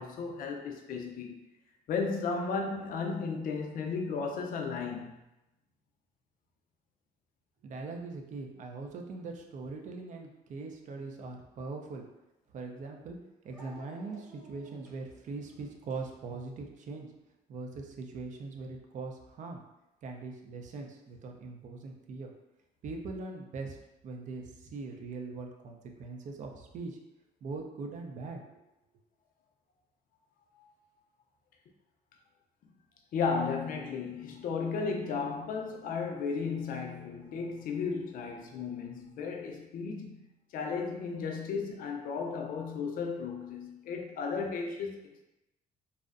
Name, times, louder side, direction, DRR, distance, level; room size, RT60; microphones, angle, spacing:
voice 1, 0.0-1.4 1.9-5.1 30.6-30.7 33.1-40.3 40.5-45.0, left 5 dB, 55° left, 3 dB, 0.4 m, -34 dB
voice 2, 7.6-12.0 12.5-13.2 13.4-17.1 17.5-19.6 20.0-22.3 22.8-23.8 24.0-27.0 27.4-28.4, right 3 dB, 50° right, 2 dB, 0.4 m, -41 dB
Dog, 12.5-12.6 13.5-16.9, right 1 dB, ahead, 0.7 m, -54 dB
2.5 x 2.0 x 2.4 m, 0.94 s
cardioid pair, 110°, 17 cm